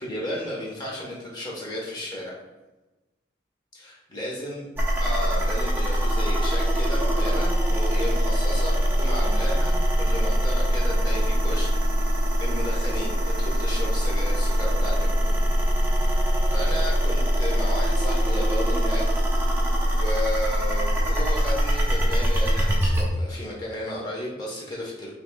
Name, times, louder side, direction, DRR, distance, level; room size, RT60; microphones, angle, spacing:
voice 1, 0.0-2.4 3.7-4.6 5.0-12.1 12.4-15.3 15.7-16.2 16.5-19.2 19.9-25.1, left 1 dB, 20° left, -4 dB, 1.0 m, -33 dB
sound 1, 4.8-23.0, equal, 10° right, 0.7 m, -23 dB
5.9 x 3.4 x 2.3 m, 1.1 s
head